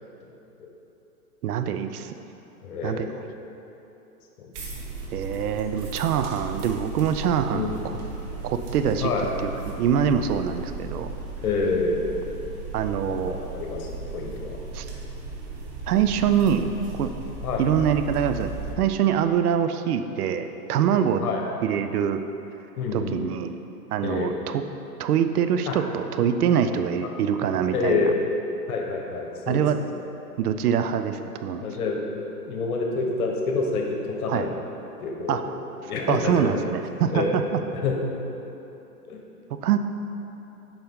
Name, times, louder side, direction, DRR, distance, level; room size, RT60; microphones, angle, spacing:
voice 1, 1.4-2.1 2.8-3.1 5.1-7.6 8.4-11.1 12.7-13.3 14.7-14.9 15.9-16.7 17.0-17.1 17.6-21.2 21.6-22.2 22.9-23.5 23.9-24.6 25.0-28.1 29.5-29.8 30.4-31.6 34.3-34.5 35.3-35.4 36.1-37.4 39.6-39.8, right 8 dB, 70° right, 8 dB, 0.6 m, -24 dB
voice 2, 2.6-3.2 4.4-4.7 7.5-7.8 9.0-9.3 11.4-12.1 13.1-14.6 17.4-17.7 21.2-21.4 22.8-23.2 24.0-24.4 25.7-25.8 27.0-27.3 27.7-28.2 28.7-29.9 31.6-34.5 35.0-35.6 35.9-36.6 37.1-37.4 37.8-38.0 39.1-39.2, left 4 dB, 65° left, 1 dB, 1.3 m, -28 dB
sound 1, 4.5-18.7, right 3 dB, 30° right, 1.1 m, -36 dB
7.1 x 5.2 x 3.7 m, 3.0 s
hypercardioid pair, 120°, 47 cm